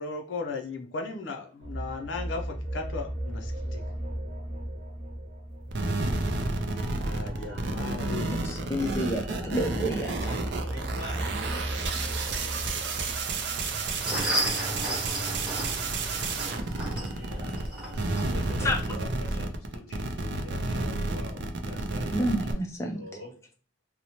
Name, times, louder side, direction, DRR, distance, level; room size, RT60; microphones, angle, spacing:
voice 1, 0.0-3.8 6.0-6.1 7.0-8.4, left 3 dB, 75° left, 3 dB, 0.5 m, -36 dB
sound 1, 1.6-18.6, right 1 dB, 85° right, 1.0 m, -37 dB
sound 2, 5.7-17.7 17.9-22.5, right 3 dB, 60° right, 0.4 m, -31 dB
voice 2, 8.4-10.4 18.6-18.8 22.1-23.0, equal, 15° left, 1 dB, 0.4 m, -29 dB
voice 3, 10.6-14.8 16.0-17.7 18.1-22.2 22.9-23.3, left 1 dB, 55° left, -5 dB, 1.3 m, -46 dB
sound 3, 13.7-18.9, right 1 dB, 5° right, 1.0 m, -34 dB
2.9 x 2.0 x 2.7 m, 0.40 s
head